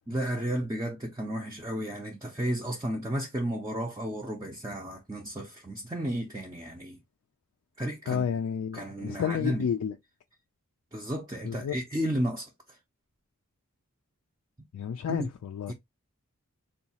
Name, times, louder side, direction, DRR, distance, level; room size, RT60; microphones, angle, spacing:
voice 1, 0.1-7.0 7.8-8.2 8.7-9.7 10.9-12.5 15.1-15.3 15.7-15.8, right 1 dB, 15° right, 0.4 m, -33 dB
voice 2, 8.1-10.0 11.4-11.8 14.7-15.7, left 7 dB, 75° left, 0.3 m, -31 dB
3.9 x 2.3 x 2.7 m
head